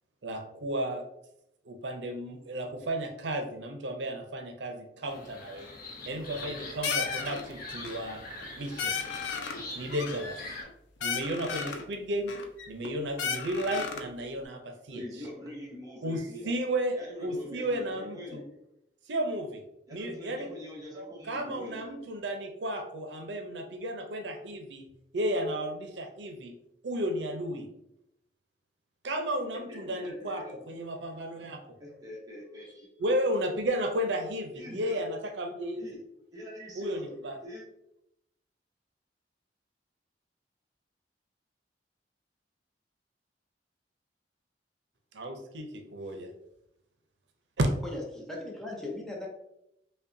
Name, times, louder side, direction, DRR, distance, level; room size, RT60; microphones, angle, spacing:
voice 1, 0.2-1.0 1.7-5.7 6.0-8.2 8.5-9.0 9.7-10.4 11.0-12.3 12.7-15.0 16.0-18.4 19.1-19.6 19.9-20.5 21.3-24.9 25.1-26.6 26.8-27.7 29.0-31.6 33.0-35.8 36.8-37.4 45.1-46.3 47.6-47.7, right 1 dB, 90° right, 5 dB, 0.6 m, -33 dB
sound 1, 5.1-10.6, left 2 dB, 55° left, 0.8 m, -44 dB
sound 2, 6.1-6.6 6.8-7.4 7.7-8.1 8.4-8.5 8.8-9.6 9.9-10.7 11.0-11.8 12.3-12.9 13.2-14.1, left 6 dB, 85° left, 0.5 m, -34 dB
voice 2, 14.9-16.5 16.9-18.4 19.9-21.8 29.7-30.9 31.8-32.9 34.5-35.0 35.7-36.0 36.3-37.1 37.4-37.6, equal, 20° right, -4 dB, 1.1 m, -44 dB
voice 3, 47.8-49.3, left 2 dB, 5° left, -2 dB, 0.6 m, -38 dB
5.4 x 2.2 x 2.6 m, 0.81 s
head